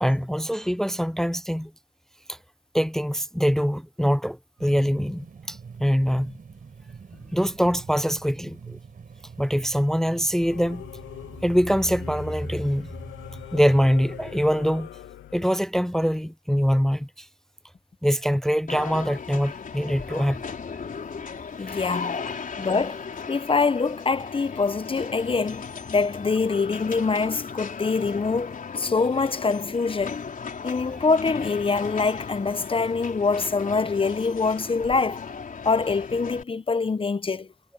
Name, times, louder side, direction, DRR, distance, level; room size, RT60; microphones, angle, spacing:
voice 1, 0.0-1.7 2.3-2.4 2.7-6.4 7.3-8.8 9.4-10.8 11.4-12.9 13.5-14.9 15.3-17.3 18.0-20.4 21.6-21.7, equal, ahead, 0.6 m, -24 dB
sound 1, 4.6-14.5, right 5 dB, 45° right, 6.7 m, -45 dB
Singing / Musical instrument, 10.4-15.5, left 12 dB, 75° left, 2.2 m, -42 dB
sound 2, 18.7-36.4, left 5 dB, 45° left, 3.9 m, -36 dB
voice 2, 21.6-22.2 22.6-25.7 25.9-30.2 30.6-35.3 35.6-37.5, left 4 dB, 25° left, 1.2 m, -24 dB
supercardioid pair, 70°, 20 cm